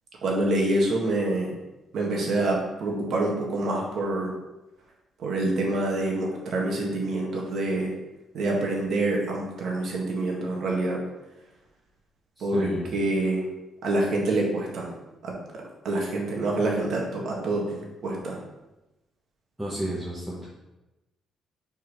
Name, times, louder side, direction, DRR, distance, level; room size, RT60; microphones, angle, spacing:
voice 1, 0.2-1.5 1.9-4.3 5.2-7.9 8.3-11.0 12.4-13.5 13.8-14.9 15.2-15.3 15.8-18.4, right 2 dB, 65° right, -1 dB, 1.9 m, -26 dB
voice 2, 12.4-12.9 19.6-20.5, right 1 dB, 5° right, -7 dB, 1.6 m, -32 dB
5.1 x 4.4 x 5.6 m, 1.0 s
cardioid pair, 90°, 0 cm